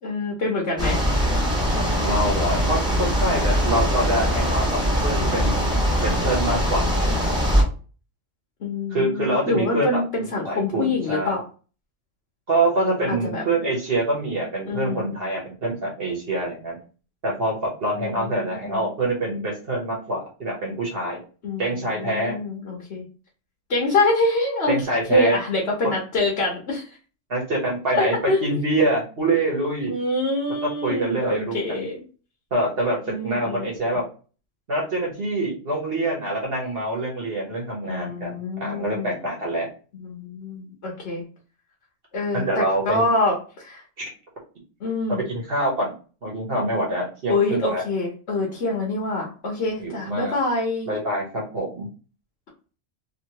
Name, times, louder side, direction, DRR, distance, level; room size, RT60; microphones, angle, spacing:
voice 1, 0.0-1.0 8.6-11.4 13.1-13.4 14.7-15.1 17.9-18.8 21.4-23.1 23.7-24.8 25.1-26.9 27.9-28.5 29.9-32.0 33.1-33.7 37.8-39.1 40.0-41.2 42.1-43.8 44.8-45.2 47.3-50.9, left 2 dB, 60° left, -1 dB, 1.1 m, -25 dB
sound 1, 0.8-7.6, equal, 5° right, 1.2 m, -22 dB
voice 2, 1.8-5.6 6.0-7.1 8.9-10.0 10.4-11.3 12.5-16.8 17.2-21.2 21.6-22.4 24.7-25.4 27.3-29.9 30.6-31.8 32.5-34.0 34.7-39.7 42.3-43.1 44.0-44.1 45.3-45.9 46.2-47.8 49.8-50.3 50.9-51.9, right 1 dB, 50° right, -2 dB, 1.2 m, -25 dB
2.9 x 2.9 x 2.8 m, 0.37 s
omnidirectional pair, 1.3 m